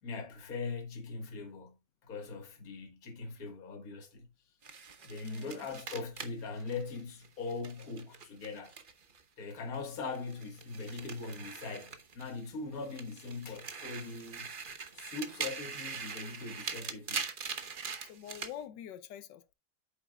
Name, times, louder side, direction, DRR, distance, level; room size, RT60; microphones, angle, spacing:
voice 1, 0.0-4.3 5.0-8.8 9.4-14.5 14.9-17.2, left 4 dB, 55° left, 2.0 m, -41 dB
sound 1, 4.6-9.2 9.5-12.5 12.8-18.5, right 5 dB, 40° right, 0.8 m, -42 dB
voice 2, 5.2-5.7 18.0-19.5, left 10 dB, 85° left, 1.4 m, -46 dB
8.9 x 7.2 x 2.3 m
omnidirectional pair, 1.9 m